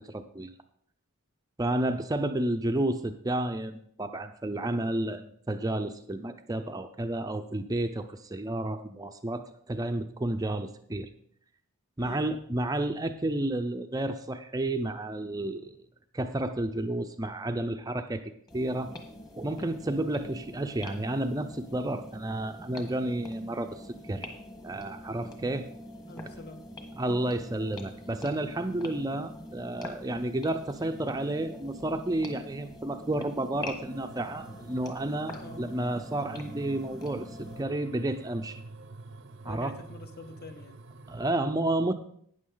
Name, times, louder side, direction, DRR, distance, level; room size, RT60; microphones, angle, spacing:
voice 1, 0.1-0.5 1.6-11.1 12.0-15.7 16.1-18.9 19.4-24.3 24.6-25.7 27.0-38.6 39.4-39.8 41.1-41.9, right 1 dB, 15° right, 7 dB, 0.5 m, -31 dB
sound 1, 18.5-37.6, left 1 dB, 20° left, 1.5 m, -44 dB
voice 2, 26.1-26.6 35.4-35.6 39.4-40.8, left 2 dB, 45° left, 7 dB, 1.1 m, -46 dB
sound 2, 33.9-41.3, right 3 dB, 60° right, 0.7 m, -47 dB
12.5 x 9.3 x 3.9 m, 0.63 s
head